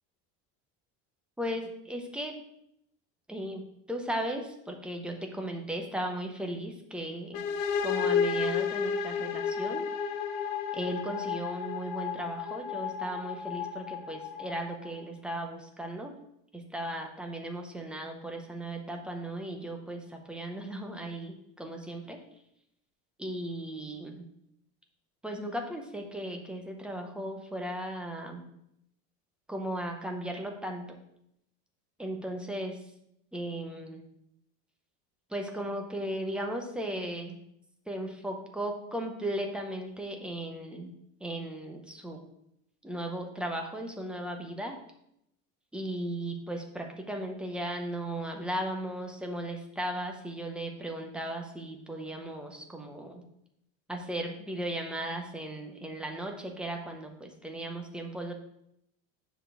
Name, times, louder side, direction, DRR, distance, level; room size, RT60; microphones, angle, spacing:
voice 1, 1.4-2.3 3.3-7.5 7.8-9.9 10.7-16.2 16.5-22.2 23.2-24.2 25.2-28.4 29.5-31.0 32.0-32.9 33.3-34.0 35.3-37.4 37.9-40.9 41.2-42.2 42.8-44.8 45.7-53.2 53.9-58.3, right 1 dB, 5° right, 3 dB, 0.7 m, -36 dB
sound 1, 7.3-15.0, left 6 dB, 90° left, 0.9 m, -32 dB
7.2 x 4.0 x 6.7 m, 0.77 s
cardioid pair, 165°, 35 cm